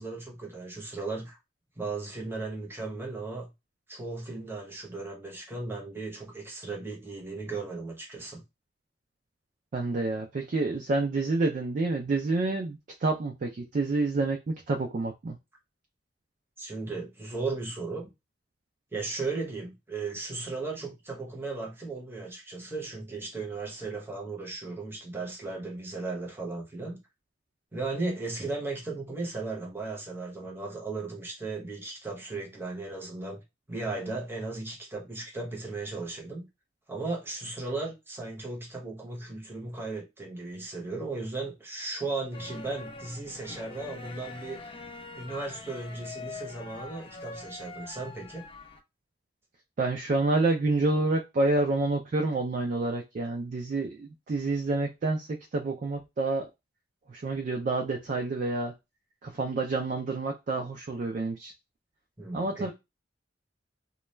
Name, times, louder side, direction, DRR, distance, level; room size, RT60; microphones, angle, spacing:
voice 1, 0.0-1.4 1.8-3.5 3.9-8.4 16.6-18.1 18.9-27.0 27.7-33.4 33.7-36.5 36.9-44.6 45.1-48.4 62.2-62.7, right 3 dB, 10° right, 0.8 m, -36 dB
voice 2, 9.7-15.4 49.8-56.5 57.1-58.7 59.2-61.5 62.3-62.7, right 3 dB, 45° right, 0.3 m, -28 dB
sound 1, 42.3-48.8, left 3 dB, 30° left, 0.3 m, -44 dB
2.3 x 2.1 x 3.0 m
head